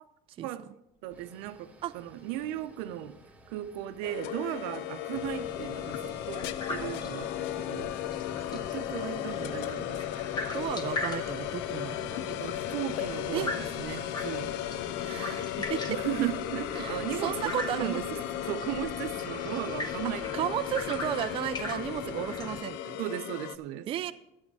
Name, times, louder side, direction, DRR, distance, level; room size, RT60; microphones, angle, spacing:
sound 1, 0.9-15.4, right 2 dB, 10° right, 0.9 m, -57 dB
voice 1, 1.0-3.2 3.5-8.0 8.5-10.2 10.5-10.6 12.3-14.6 15.9-20.5 22.0-22.2 23.0-23.9, right 12 dB, 90° right, 0.7 m, -36 dB
sound 2, 4.0-23.6, left 13 dB, 70° left, 0.5 m, -35 dB
sound 3, 5.1-22.6, left 2 dB, 20° left, 1.0 m, -40 dB
voice 2, 10.5-12.3 13.3-13.5 15.0-15.8 16.8-18.0 20.3-23.0 23.9-24.1, right 11 dB, 30° right, 0.4 m, -34 dB
11.0 x 8.5 x 4.7 m
cardioid pair, 150°, 18 cm